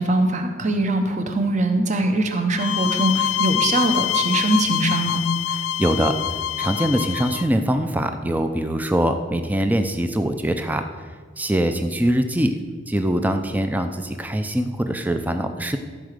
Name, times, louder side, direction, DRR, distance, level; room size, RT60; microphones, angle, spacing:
voice 1, 0.0-5.2, right 2 dB, 40° right, 5 dB, 1.0 m, -22 dB
sound 1, 2.6-7.5, left 10 dB, 85° left, 0.3 m, -25 dB
voice 2, 5.8-6.2 6.6-10.8 11.4-12.6 12.9-15.8, right 1 dB, 10° right, 7 dB, 0.5 m, -22 dB
14.0 x 5.0 x 6.6 m, 1.6 s
head